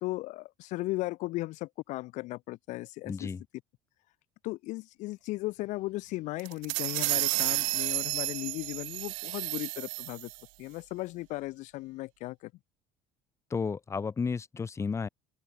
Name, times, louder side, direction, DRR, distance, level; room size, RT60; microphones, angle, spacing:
voice 1, 0.0-3.3 4.4-10.3 10.6-12.5, left 19 dB, 65° left, 0.5 m, -36 dB
voice 2, 3.0-3.4 13.5-15.1, left 5 dB, 20° left, 0.7 m, -32 dB
sound 1, 6.4-10.4, right 39 dB, 80° right, 0.4 m, -31 dB
open air
supercardioid pair, 105°, 14 cm